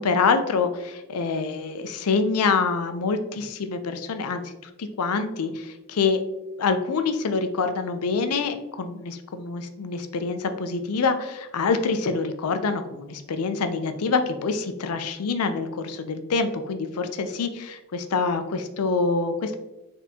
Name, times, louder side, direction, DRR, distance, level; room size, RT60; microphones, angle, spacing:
voice 1, 0.0-4.4 4.8-6.2 6.6-19.6, left 4 dB, 85° left, 8 dB, 0.5 m, -26 dB
4.2 x 3.5 x 2.7 m, 1.0 s
head